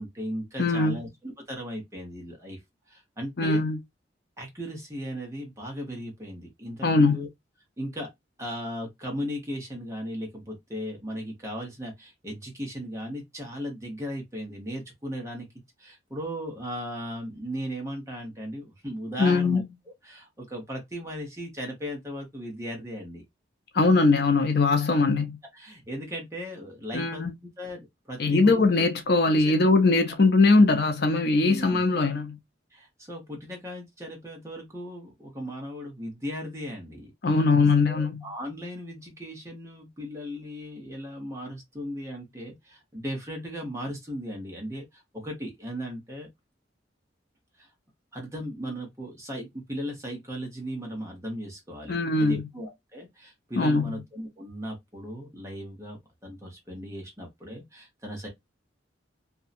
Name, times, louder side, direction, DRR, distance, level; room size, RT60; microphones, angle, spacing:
voice 1, 0.0-2.6 2.9-3.6 4.4-7.3 7.8-8.1 8.4-15.5 15.8-19.6 20.0-23.2 25.5-27.3 27.6-28.7 29.3-29.5 30.1-30.2 31.4-31.8 32.7-37.1 37.9-46.3 47.6-47.7 48.1-58.3, equal, 15° right, 1.0 m, -37 dB
voice 2, 0.6-1.0 3.4-3.8 6.8-7.3 19.2-19.6 23.7-25.4 26.9-27.3 28.2-32.4 37.2-38.2 51.9-52.4 53.6-53.9, left 3 dB, 55° left, 0.6 m, -21 dB
2.7 x 2.2 x 2.4 m
head